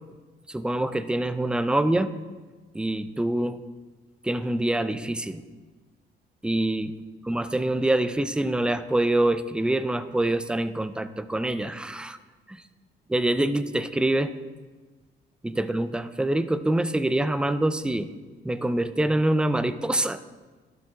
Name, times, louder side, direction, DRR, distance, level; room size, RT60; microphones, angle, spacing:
voice 1, 0.5-2.1 2.7-3.6 4.2-5.4 6.4-6.9 7.3-12.2 12.5-12.6 13.1-14.3 15.4-18.1 18.4-20.2, right 1 dB, 5° right, 12 dB, 0.3 m, -25 dB
12.0 x 7.9 x 2.3 m, 1.3 s
cardioid pair, 90°, 20 cm